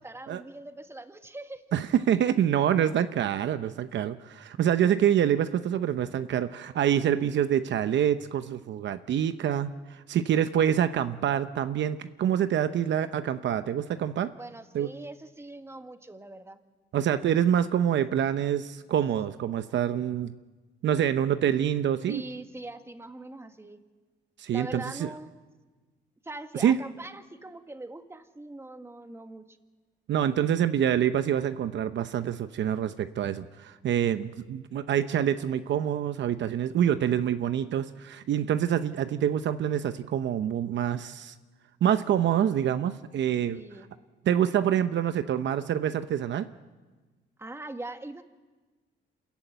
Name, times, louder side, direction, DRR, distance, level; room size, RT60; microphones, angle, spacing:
voice 1, 0.0-1.6 14.4-16.6 22.1-23.8 24.5-25.3 26.2-29.6 43.5-43.9 47.4-48.2, right 2 dB, 15° right, 7 dB, 1.7 m, -42 dB
voice 2, 1.7-14.3 14.7-14.9 16.9-20.3 20.8-22.2 24.4-25.1 26.6-26.8 30.1-41.3 41.8-43.6 44.3-46.5, right 9 dB, 65° right, 10 dB, 0.8 m, -26 dB
27.0 x 14.5 x 9.1 m, 1.3 s
cardioid pair, 90°, 20 cm